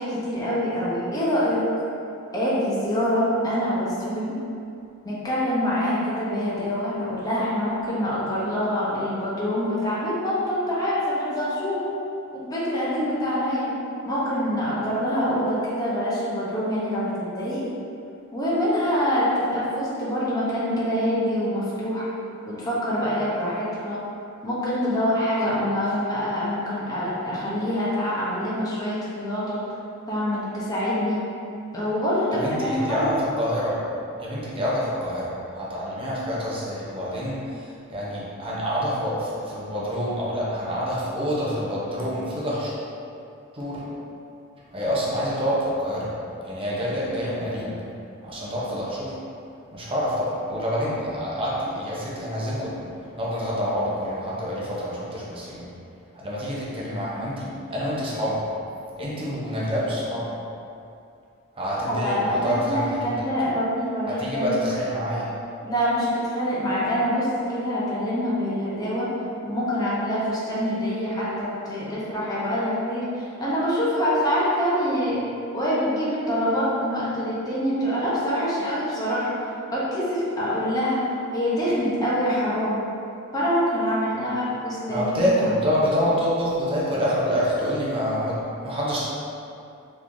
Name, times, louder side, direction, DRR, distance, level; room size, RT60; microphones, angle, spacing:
voice 1, 0.0-1.7 2.3-4.4 5.0-11.8 12.3-13.7 14.0-17.6 18.3-22.1 22.5-24.0 24.4-29.6 30.1-31.2 31.7-33.1 61.9-64.5 65.6-69.1 69.4-75.2 75.5-79.4 79.7-81.1 81.3-82.9 83.3-85.3, equal, 15° left, -9 dB, 0.7 m, -25 dB
voice 2, 32.3-33.8 34.2-42.7 43.5-43.8 44.7-46.1 46.4-47.8 48.2-49.2 49.7-52.9 53.2-55.7 56.1-58.5 59.0-60.3 61.5-63.0 64.1-65.3 84.9-89.0, equal, 25° right, -7 dB, 0.7 m, -27 dB
3.6 x 3.1 x 2.6 m, 2.6 s
head